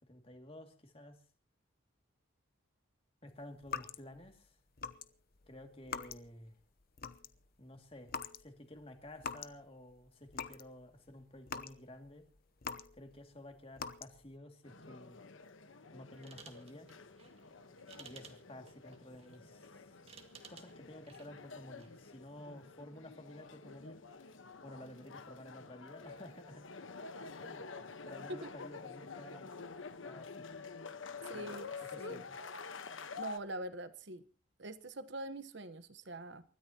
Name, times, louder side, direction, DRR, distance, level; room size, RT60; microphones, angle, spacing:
voice 1, 0.0-1.2 3.2-4.6 5.5-6.6 7.6-12.3 12.9-15.2 15.9-16.9 18.0-19.9 20.5-24.3 24.6-26.9 27.3-29.5 30.0-30.6 31.3-32.4, left 1 dB, 30° left, 2.5 m, -53 dB
sound 1, 3.6-4.3 4.8-5.1 5.3-6.5 6.8-7.5 8.1-8.4 8.8-9.6 10.0-10.7 11.1-13.2 13.8-14.4, left 6 dB, 50° left, 0.8 m, -43 dB
sound 2, 14.6-33.4, left 4 dB, 80° left, 1.2 m, -49 dB
sound 3, 16.1-22.0, right 5 dB, 30° right, 2.0 m, -58 dB
voice 2, 31.3-32.2 33.1-34.2 34.6-36.4, right 1 dB, 60° right, 1.2 m, -44 dB
29.0 x 13.5 x 2.9 m
head